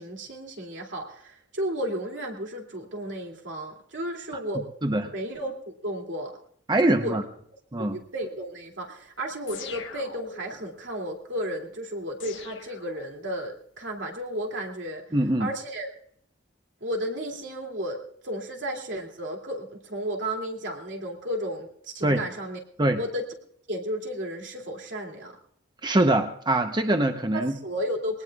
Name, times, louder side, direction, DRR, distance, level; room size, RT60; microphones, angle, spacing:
voice 1, 0.0-4.7 5.1-6.4 6.8-7.2 7.8-15.0 15.4-15.9 16.8-22.6 23.0-23.3 23.7-25.4 27.3-28.2, equal, 80° right, 0 dB, 2.6 m, -33 dB
voice 2, 4.8-5.1 6.7-7.2 7.7-8.0 15.1-15.5 22.0-22.2 22.8-23.0 25.8-27.5, right 1 dB, 25° right, 6 dB, 0.8 m, -23 dB
sound 1, 9.5-10.7 12.2-13.5, left 6 dB, 90° left, 1.3 m, -42 dB
22.0 x 19.0 x 2.4 m, 0.65 s
head